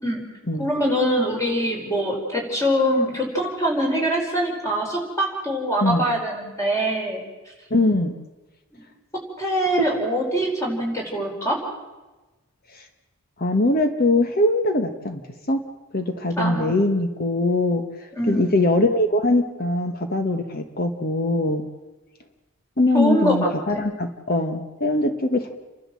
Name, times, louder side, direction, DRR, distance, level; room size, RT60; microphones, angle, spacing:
voice 1, 0.6-7.2 8.7-8.8 9.4-11.6 16.4-16.8 18.1-18.5 22.9-23.8, equal, 15° left, 0 dB, 4.7 m, -23 dB
voice 2, 7.7-8.1 12.7-12.8 13.4-15.2 15.5-15.6 15.9-17.8 18.2-21.6 22.8-25.6, left 2 dB, 40° left, 7 dB, 1.3 m, -22 dB
29.5 x 12.0 x 7.6 m, 1.1 s
head